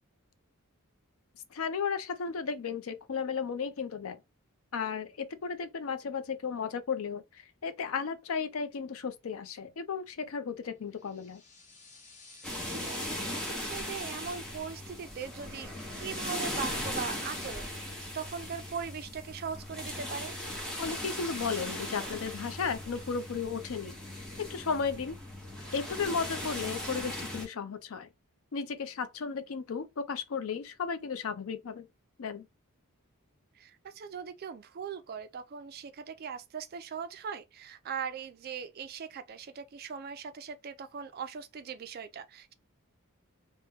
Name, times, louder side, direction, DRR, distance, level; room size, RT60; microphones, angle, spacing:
voice 1, 1.5-4.2 4.7-11.4 20.8-25.2 25.7-28.1 28.5-31.9 32.2-32.5, left 5 dB, 65° left, 0.5 m, -34 dB
sound 1, 10.9-13.1, left 3 dB, 35° left, 0.7 m, -53 dB
sound 2, 12.4-27.5, left 1 dB, 5° left, 0.8 m, -38 dB
voice 2, 12.4-20.3 26.8-27.0 33.5-42.5, right 6 dB, 45° right, 0.3 m, -40 dB
2.9 x 2.1 x 3.4 m
head